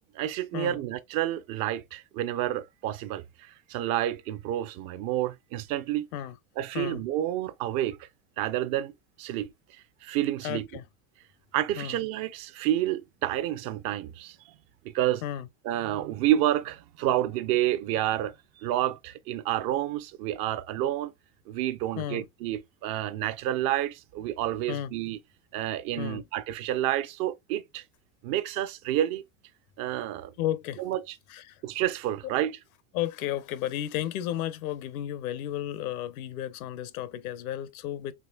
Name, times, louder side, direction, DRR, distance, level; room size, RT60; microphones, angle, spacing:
voice 1, 0.1-6.1 6.6-8.1 8.4-8.9 9.2-9.5 10.0-10.7 11.5-14.5 14.8-15.2 15.6-21.1 21.5-25.2 25.5-27.8 28.2-29.2 29.8-30.3 30.8-31.1 31.6-32.6, right 13 dB, 55° right, 0.7 m, -29 dB
voice 2, 10.4-10.8 11.8-12.0 15.2-15.5 22.0-22.2 24.7-24.9 26.0-26.2 30.4-30.8 31.3-31.6 32.9-38.1, left 12 dB, 80° left, 0.8 m, -33 dB
4.8 x 3.3 x 2.3 m
supercardioid pair, 110°, 42 cm